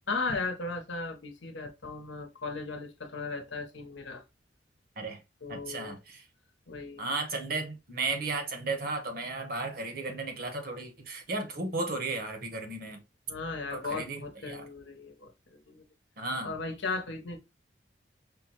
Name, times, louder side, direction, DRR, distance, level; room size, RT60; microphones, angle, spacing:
voice 1, 0.1-4.2 5.4-6.0 6.7-7.0 13.3-15.9 16.4-17.4, left 3 dB, 75° left, 0.9 m, -36 dB
voice 2, 5.5-6.2 7.0-13.0 13.7-14.6 16.2-16.5, right 3 dB, 50° right, 0.9 m, -34 dB
5.5 x 2.1 x 2.9 m
head